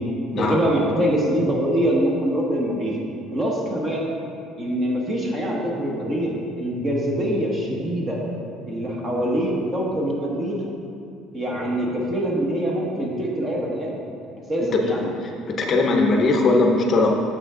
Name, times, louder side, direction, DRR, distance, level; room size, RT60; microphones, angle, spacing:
voice 1, 0.3-2.9 3.3-4.1 4.6-6.3 6.6-8.2 8.7-10.6 11.3-14.0 14.5-15.1, equal, 25° right, -2 dB, 1.4 m, -24 dB
voice 2, 15.2-17.1, left 3 dB, 40° left, 2 dB, 0.7 m, -20 dB
8.3 x 6.8 x 3.7 m, 2.4 s
cardioid pair, 140°, 0 cm